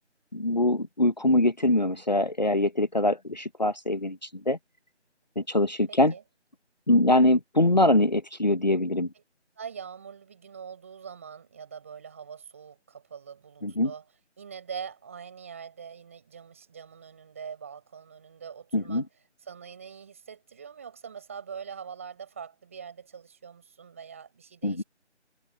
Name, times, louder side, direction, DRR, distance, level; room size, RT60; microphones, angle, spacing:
voice 1, 0.3-4.6 5.4-6.1 6.9-9.1 13.6-13.9 18.7-19.0 24.6-24.8, left 1 dB, 40° left, 1.3 m, -23 dB
voice 2, 5.9-6.2 9.6-14.1 14.4-19.1 19.4-24.8, right 7 dB, 10° right, 4.6 m, -43 dB
figure-of-eight pair, 170°, 35 cm